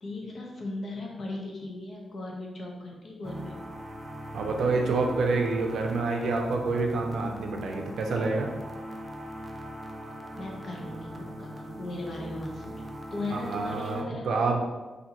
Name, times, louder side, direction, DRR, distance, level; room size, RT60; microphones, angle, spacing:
voice 1, 0.0-3.6 10.4-12.7 13.1-14.5, left 2 dB, 50° left, -1 dB, 0.8 m, -37 dB
sound 1, 3.2-14.0, equal, 25° right, 0.4 m, -40 dB
voice 2, 4.3-8.5 13.3-14.6, right 3 dB, 75° right, 2 dB, 0.5 m, -27 dB
4.3 x 2.7 x 2.8 m, 1.2 s
wide cardioid pair, 115°, 0 cm